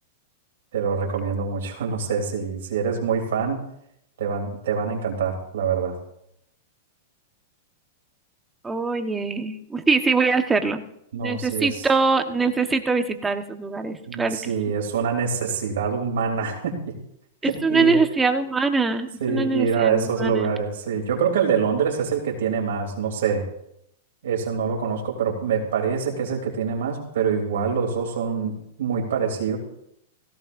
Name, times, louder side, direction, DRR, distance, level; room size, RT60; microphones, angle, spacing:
voice 1, 0.7-3.6 4.2-6.0 11.1-11.9 14.1-16.9 17.4-18.0 19.2-23.4 24.2-29.6, right 6 dB, 75° right, -1 dB, 3.2 m, -25 dB
voice 2, 8.6-10.8 11.2-14.5 17.4-20.5, right 4 dB, 15° right, 6 dB, 1.3 m, -23 dB
17.5 x 17.0 x 2.7 m, 0.77 s
hypercardioid pair, 120°, 0 cm